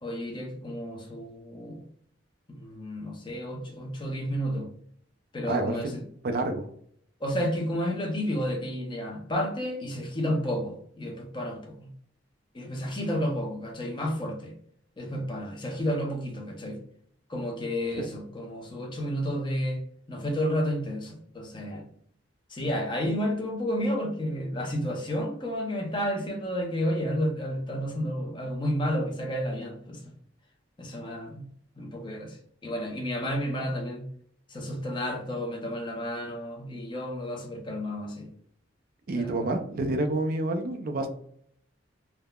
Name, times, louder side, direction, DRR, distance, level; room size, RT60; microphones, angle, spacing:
voice 1, 0.0-1.8 2.5-4.7 5.3-6.0 7.2-11.9 12.5-14.5 15.0-16.8 17.3-19.8 20.1-21.8 22.5-30.0 30.8-31.5 31.8-34.0 34.5-38.3 39.1-39.5, equal, 25° left, 1 dB, 0.5 m, -31 dB
voice 2, 5.5-5.9 6.2-6.7 18.0-18.1 39.1-41.1, right 2 dB, 50° right, 6 dB, 0.4 m, -28 dB
3.4 x 2.0 x 2.3 m, 0.63 s
head